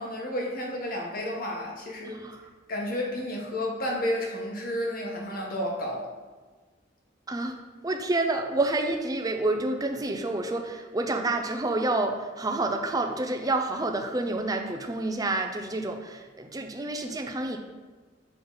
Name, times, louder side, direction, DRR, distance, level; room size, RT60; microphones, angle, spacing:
voice 1, 0.0-2.2 2.7-6.0, left 1 dB, 50° left, -2 dB, 1.3 m, -31 dB
voice 2, 2.0-2.5 7.3-7.6 7.8-17.6, right 2 dB, 20° right, 5 dB, 0.5 m, -28 dB
6.9 x 3.8 x 3.9 m, 1.4 s
head